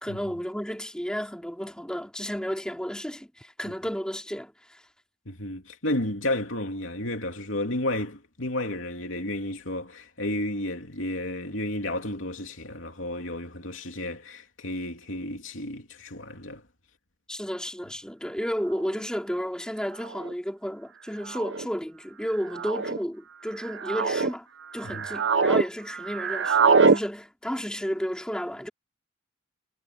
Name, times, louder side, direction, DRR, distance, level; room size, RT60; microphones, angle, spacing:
voice 1, 0.0-4.8 17.3-24.5 24.7-28.7, equal, 5° left, 3.1 m, -32 dB
voice 2, 5.3-16.6 24.8-25.1, left 1 dB, 80° left, 2.9 m, -32 dB
sound 1, 18.9-19.0 20.0-20.3 21.3-21.6 22.5-23.0 23.6-24.3 24.8-25.7 25.9-27.0, right 4 dB, 65° right, 0.8 m, -23 dB
head